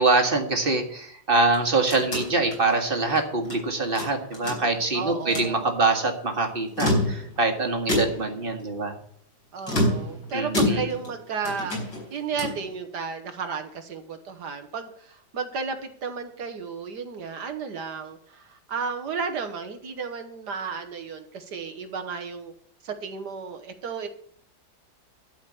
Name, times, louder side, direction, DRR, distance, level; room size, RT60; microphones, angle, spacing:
voice 1, 0.0-8.9 10.3-10.8, right 3 dB, 30° right, 4 dB, 1.8 m, -24 dB
sound 1, 1.4-3.6 4.0-4.9 5.2-5.6 6.6-7.4 7.9-8.4 9.6-11.2 11.4-12.7, left 1 dB, 65° left, 5.2 m, -28 dB
voice 2, 4.9-5.7 9.5-22.5 22.8-24.1, right 5 dB, 65° right, 7 dB, 1.7 m, -33 dB
12.0 x 5.1 x 8.6 m, 0.62 s
omnidirectional pair, 2.0 m